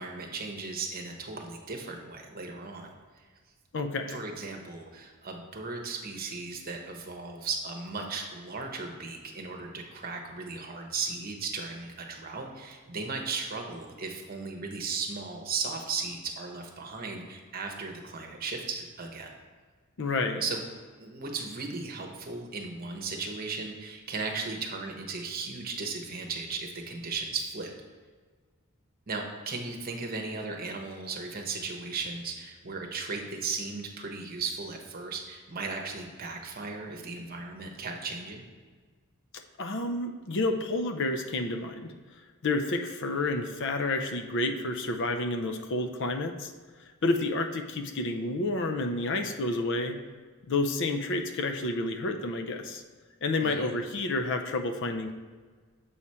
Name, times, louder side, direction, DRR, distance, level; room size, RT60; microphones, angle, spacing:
voice 1, 0.0-2.9 4.1-19.3 20.4-20.6 21.0-27.7 29.1-38.5 53.4-53.7, right 4 dB, 40° right, 2 dB, 0.9 m, -36 dB
voice 2, 3.7-4.2 20.0-20.4 39.6-41.9 42.4-46.5 47.0-50.0 50.5-52.8 53.2-55.1, left 2 dB, 55° left, 6 dB, 0.5 m, -30 dB
7.1 x 4.9 x 4.2 m, 1.5 s
head